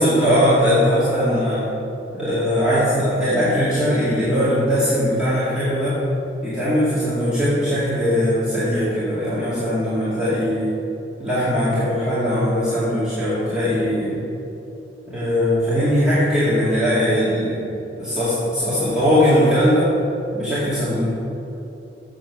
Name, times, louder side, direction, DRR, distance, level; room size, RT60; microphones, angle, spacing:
voice 1, 0.0-1.7 2.1-6.0 6.4-10.7 11.2-14.2 15.1-17.6 18.0-19.9 20.3-21.0, equal, 5° right, -13 dB, 2.1 m, -20 dB
8.0 x 7.5 x 6.1 m, 2.9 s
head